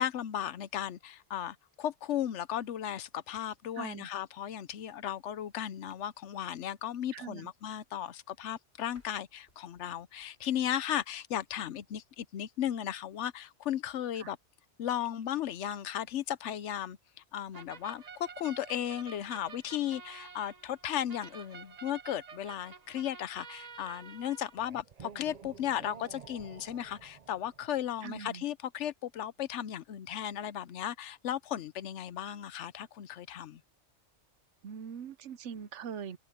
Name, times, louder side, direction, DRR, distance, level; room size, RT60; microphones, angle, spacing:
voice 1, 0.0-14.4 14.8-17.0 17.3-33.6, left 10 dB, 90° left, 1.0 m, -35 dB
voice 2, 3.8-4.1 7.1-7.5 14.2-14.3 28.0-28.4 34.6-36.2, right 7 dB, 90° right, 1.1 m, -42 dB
sound 1, 8.9-11.7, left 1 dB, 65° left, 6.9 m, -68 dB
sound 2, 17.5-27.9, right 6 dB, 40° right, 0.8 m, -50 dB
omnidirectional pair, 1.2 m